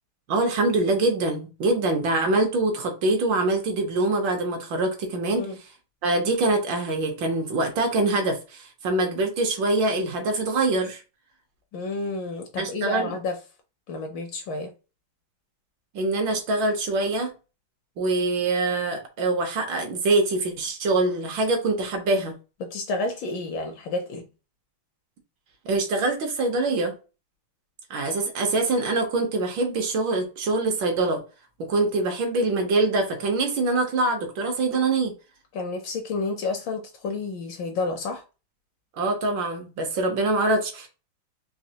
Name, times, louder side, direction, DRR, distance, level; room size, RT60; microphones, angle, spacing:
voice 1, 0.3-5.5 6.0-11.0 12.6-13.1 15.9-17.3 18.0-22.3 25.6-26.9 27.9-31.2 31.7-35.1 39.0-40.9, right 2 dB, 70° right, 1.3 m, -24 dB
voice 2, 11.7-13.4 13.9-14.7 22.6-24.3 35.5-38.2, left 3 dB, 70° left, 1.2 m, -30 dB
4.1 x 2.8 x 2.7 m
omnidirectional pair, 2.4 m